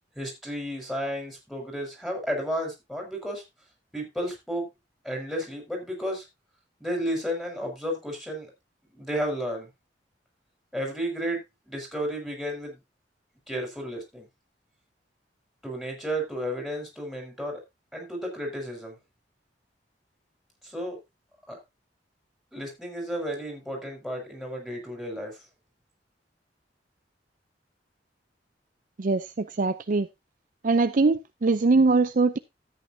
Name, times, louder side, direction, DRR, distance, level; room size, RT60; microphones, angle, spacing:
voice 1, 0.1-3.4 3.9-4.7 5.0-6.2 6.8-8.5 8.9-9.7 10.7-12.8 13.5-14.3 15.6-17.6 17.9-19.0 20.6-21.0 21.5-21.6 22.5-25.4, equal, ahead, 4.9 m, -32 dB
voice 2, 29.0-30.1 30.6-32.4, right 3 dB, 50° right, 0.5 m, -22 dB
13.5 x 8.9 x 2.7 m
head